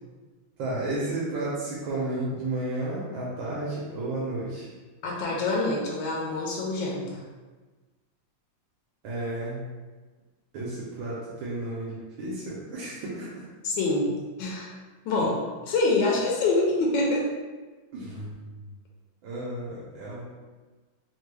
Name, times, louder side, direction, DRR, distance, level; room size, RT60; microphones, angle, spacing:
voice 1, 0.6-4.7 9.0-9.6 10.5-13.5 15.2-15.3 17.9-18.7 19.2-20.2, right 2 dB, 80° right, -6 dB, 1.4 m, -32 dB
voice 2, 5.0-7.2 13.6-14.1 14.4-14.7 15.0-15.3 15.7-17.3, left 2 dB, 80° left, -3 dB, 1.3 m, -25 dB
3.4 x 2.2 x 3.1 m, 1.3 s
omnidirectional pair, 2.1 m